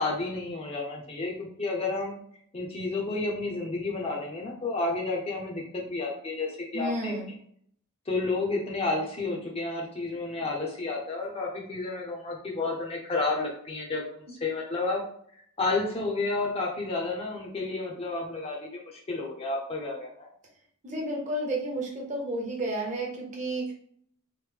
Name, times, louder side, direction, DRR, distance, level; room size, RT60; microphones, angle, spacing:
voice 1, 0.0-2.2 2.5-7.1 8.1-15.0 15.6-20.3, left 3 dB, 30° left, -1 dB, 0.6 m, -31 dB
voice 2, 6.7-7.3 14.3-14.4 20.8-23.7, right 1 dB, 35° right, -1 dB, 0.7 m, -31 dB
3.1 x 2.1 x 3.3 m, 0.63 s
head